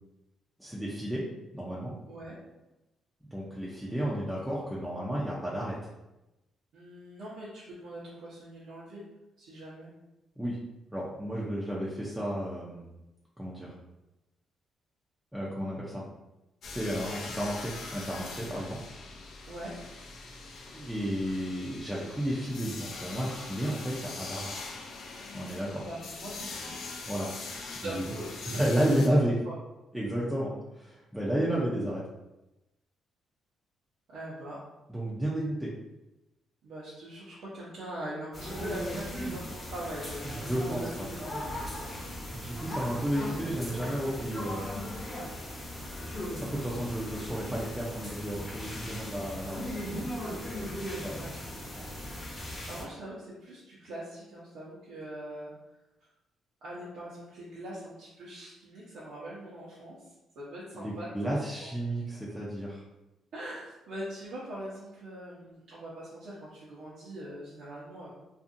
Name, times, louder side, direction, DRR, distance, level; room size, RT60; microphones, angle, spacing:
voice 1, 0.6-1.3 1.5-1.9 3.2-5.8 10.4-10.6 10.9-12.9 13.4-13.7 15.3-16.0 16.7-18.8 20.7-24.7 25.3-25.8 27.1-27.3 27.7-28.1 28.5-29.3 29.9-32.0 34.9-35.7 40.2-41.1 42.3-45.0 46.4-50.1 51.0-51.1 60.7-62.8, right 1 dB, 5° right, -6 dB, 0.5 m, -32 dB
voice 2, 2.1-2.4 6.7-9.0 9.4-9.9 19.5-19.8 25.8-26.8 27.8-29.2 29.4-29.5 34.1-34.6 36.6-40.9 41.2-41.5 50.2-50.6 51.1-51.4 51.7-51.9 52.3-55.5 56.6-60.1 60.4-61.7 63.3-68.1, right 1 dB, 75° right, -9 dB, 0.8 m, -42 dB
sound 1, 16.6-29.1, left 3 dB, 65° left, 0.4 m, -42 dB
sound 2, 38.3-52.8, equal, 25° left, 0.9 m, -38 dB
2.6 x 2.5 x 2.5 m, 0.97 s
cardioid pair, 90°, 0 cm